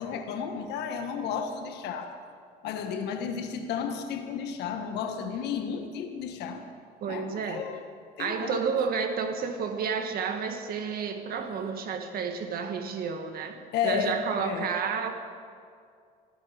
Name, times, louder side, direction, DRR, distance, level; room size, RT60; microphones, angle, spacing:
voice 1, 0.0-2.2 2.6-6.6 7.1-7.8 8.2-8.6 13.7-14.7, left 7 dB, 80° left, 6 dB, 1.5 m, -32 dB
voice 2, 7.0-7.6 8.2-15.1, right 6 dB, 65° right, 6 dB, 1.6 m, -31 dB
15.5 x 13.5 x 5.1 m, 2.3 s
cardioid pair, 110°, 17 cm